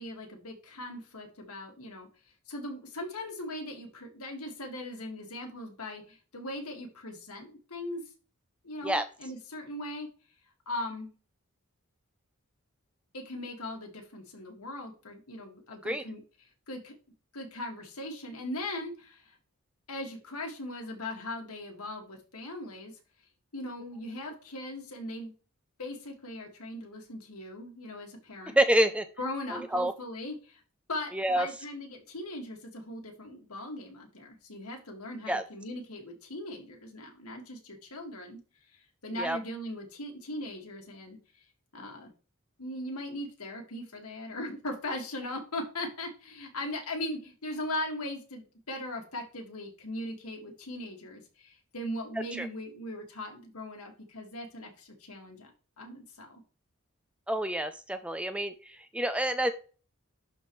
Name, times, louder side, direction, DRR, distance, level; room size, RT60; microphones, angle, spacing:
voice 1, 0.0-2.1 2.5-8.0 8.6-10.1 10.7-11.1 13.1-16.2 16.7-16.9 17.3-19.2 19.9-22.9 23.5-25.3 25.8-28.6 29.2-30.6 30.9-38.4 38.7-41.2 41.7-42.1 42.6-56.4, left 1 dB, 85° left, 2 dB, 2.0 m, -39 dB
voice 2, 28.6-29.1 29.5-29.9 31.1-31.5 35.3-35.4 39.2-39.4 52.4-52.5 57.3-59.5, right 1 dB, 5° right, 11 dB, 0.4 m, -27 dB
11.5 x 4.2 x 3.1 m, 0.36 s
head